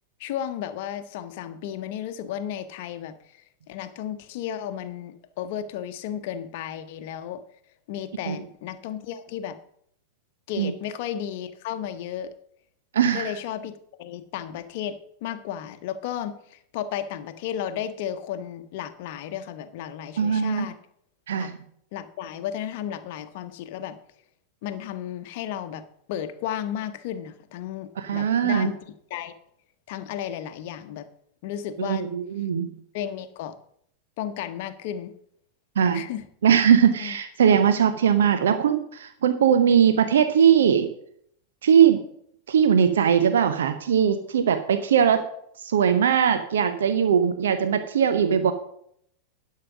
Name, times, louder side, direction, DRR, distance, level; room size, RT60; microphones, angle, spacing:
voice 1, 0.2-7.4 7.9-9.6 10.5-12.3 13.1-20.8 21.4-21.5 21.9-24.0 24.6-28.8 29.1-29.3 29.9-31.1 31.4-32.1 32.9-33.6 34.2-35.1 35.9-36.2 37.0-37.2, left 10 dB, 50° left, 9 dB, 0.9 m, -33 dB
voice 2, 12.9-13.3 20.2-20.7 21.3-21.6 28.0-28.7 31.8-32.7 35.8-36.0 36.4-40.9 41.6-42.0 42.5-45.2 45.6-48.5, right 8 dB, 65° right, 9 dB, 0.8 m, -20 dB
11.0 x 5.7 x 6.0 m, 0.68 s
figure-of-eight pair, 90°, 0 cm